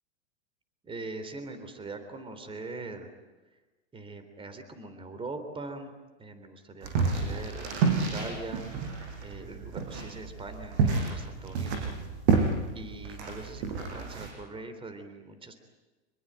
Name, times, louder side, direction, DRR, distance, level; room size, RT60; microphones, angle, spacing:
voice 1, 0.8-3.1 3.9-5.9 6.2-8.6 9.2-12.0 12.7-15.5, right 2 dB, 15° right, 9 dB, 3.5 m, -42 dB
sound 1, 6.8-14.3, right 4 dB, 65° right, 6.8 m, -30 dB
25.5 x 22.0 x 8.8 m, 1.2 s
supercardioid pair, 135°, 35 cm